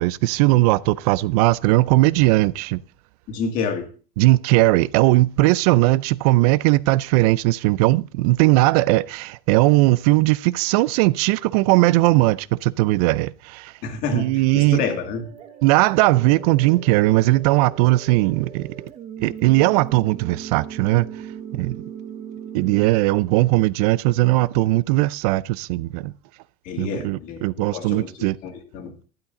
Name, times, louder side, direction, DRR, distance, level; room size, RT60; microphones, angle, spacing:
voice 1, 0.0-2.8 4.2-13.7 14.1-14.8 15.6-18.7 19.2-21.1 21.5-21.8 22.5-26.1 26.8-28.4, right 19 dB, 75° right, 0.4 m, -18 dB
voice 2, 3.3-3.9 13.8-15.2 26.7-28.9, left 5 dB, 45° left, 2.1 m, -29 dB
sound 1, 14.9-22.9, right 8 dB, 35° right, 1.2 m, -38 dB
12.0 x 10.0 x 3.8 m
cardioid pair, 160°, 19 cm